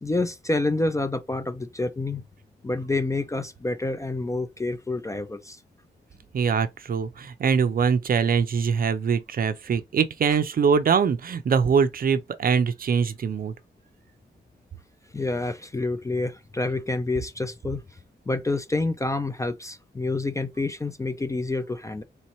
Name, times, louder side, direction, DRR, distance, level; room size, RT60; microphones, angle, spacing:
voice 1, 0.0-2.2 2.6-5.6 15.1-17.8 18.3-22.0, left 2 dB, 15° left, 0.3 m, -28 dB
voice 2, 6.3-13.5, right 6 dB, 50° right, 0.5 m, -23 dB
4.2 x 3.1 x 2.9 m
wide cardioid pair, 160°, 19 cm